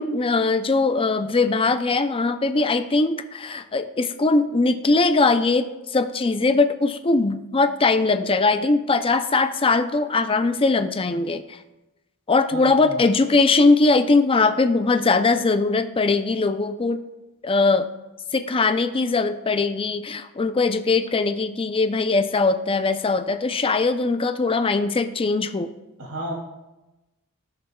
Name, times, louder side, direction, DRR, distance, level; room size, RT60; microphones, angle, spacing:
voice 1, 0.0-11.6 12.3-17.0 17.4-17.9 18.3-25.7, left 3 dB, 25° left, 10 dB, 0.5 m, -21 dB
voice 2, 12.5-13.0 26.0-26.3, right 1 dB, 80° right, -3 dB, 2.8 m, -32 dB
16.0 x 6.6 x 2.3 m, 1.0 s
head